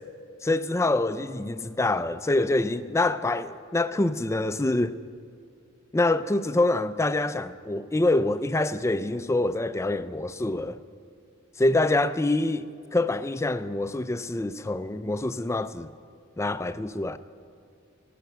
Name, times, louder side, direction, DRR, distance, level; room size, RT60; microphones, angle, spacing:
voice 1, 0.4-5.0 5.9-10.8 11.6-15.9 16.4-17.2, left 2 dB, 15° left, 0.4 m, -25 dB
18.5 x 9.4 x 6.9 m
head